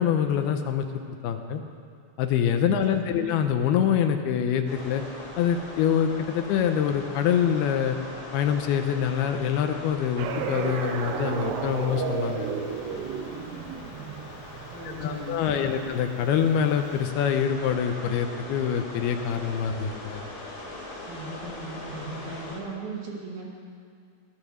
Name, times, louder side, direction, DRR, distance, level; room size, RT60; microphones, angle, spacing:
voice 1, 0.0-1.6 2.2-5.0 5.4-8.0 8.3-12.5 15.0-20.2, left 8 dB, 80° left, 6 dB, 2.5 m, -25 dB
sound 1, 4.7-22.6, left 1 dB, 45° left, 3.5 m, -41 dB
sound 2, 10.2-15.5, right 7 dB, 80° right, 2.8 m, -32 dB
voice 2, 14.7-15.9 21.1-23.5, right 3 dB, 50° right, -3 dB, 3.1 m, -38 dB
19.0 x 10.5 x 6.6 m, 2.3 s
omnidirectional pair, 5.2 m